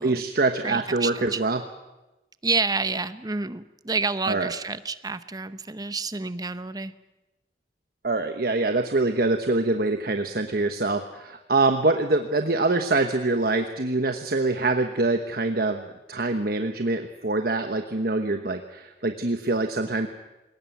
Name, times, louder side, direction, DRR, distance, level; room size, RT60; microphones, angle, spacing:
voice 1, 0.0-1.6 4.3-4.5 8.0-20.1, right 2 dB, 55° right, 6 dB, 1.1 m, -24 dB
voice 2, 0.6-1.4 2.4-6.9, right 4 dB, 20° right, 13 dB, 0.8 m, -29 dB
21.5 x 18.5 x 9.3 m, 1.0 s
head